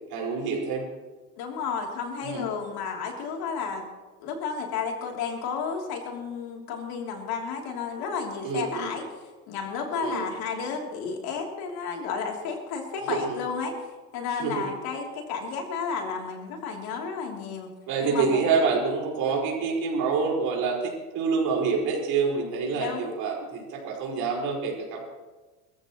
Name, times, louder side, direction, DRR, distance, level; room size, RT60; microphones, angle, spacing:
voice 1, 0.1-0.9 2.2-2.4 8.4-8.9 10.0-10.3 13.1-13.4 14.4-14.6 17.9-25.0, right 5 dB, 50° right, -1 dB, 4.8 m, -27 dB
voice 2, 1.4-3.8 4.2-9.0 9.5-13.9 14.1-17.7 18.0-18.5 22.7-23.1, left 5 dB, 50° left, 1 dB, 3.1 m, -32 dB
22.0 x 14.5 x 3.0 m, 1.2 s
supercardioid pair, 135°, 48 cm